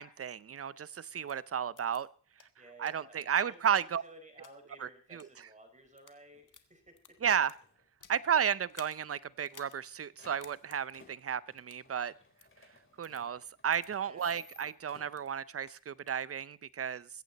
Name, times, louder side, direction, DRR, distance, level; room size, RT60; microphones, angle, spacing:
voice 1, 0.0-2.1 2.8-4.0 4.8-5.3 7.2-7.5 8.1-12.1 13.0-17.1, right 8 dB, 35° right, 0.7 m, -33 dB
voice 2, 1.1-1.4 2.6-7.2 12.9-13.0 14.0-14.4, right 1 dB, 20° right, 4.9 m, -56 dB
sound 1, 1.3-1.4 1.8-2.0 2.4-2.5 2.9-3.0 3.5-4.5 5.1-5.3 5.8-6.2 6.5-8.2 8.7-9.0 9.4-9.8 10.1-10.2 10.4-10.8 11.6-11.8 12.4-12.5 13.0-13.2 13.7-13.9 14.3-14.4 14.8-15.3 15.7-16.2, left 6 dB, 50° left, 1.5 m, -55 dB
sound 2, 6.3-6.5 6.9-7.2 7.5-8.5 8.7-8.8 9.0-9.1 9.6-15.3, left 3 dB, 30° left, 3.9 m, -60 dB
22.5 x 8.4 x 4.1 m
cardioid pair, 75°, 39 cm